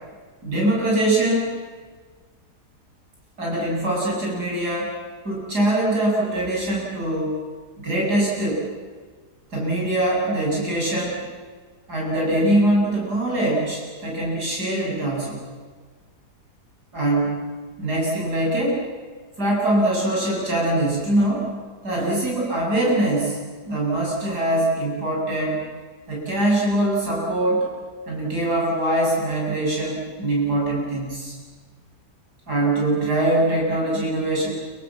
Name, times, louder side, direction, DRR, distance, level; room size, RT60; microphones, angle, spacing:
voice 1, 0.4-1.6 3.4-5.0 5.2-7.4 7.8-8.7 9.5-11.2 11.9-15.5 16.9-17.4 17.8-18.8 19.4-21.5 21.8-23.4 23.7-25.6 26.1-27.7 28.1-31.3 32.5-34.5, right 1 dB, 80° right, -4 dB, 8.5 m, -22 dB
27.5 x 25.0 x 7.6 m, 1.5 s
omnidirectional pair, 1.7 m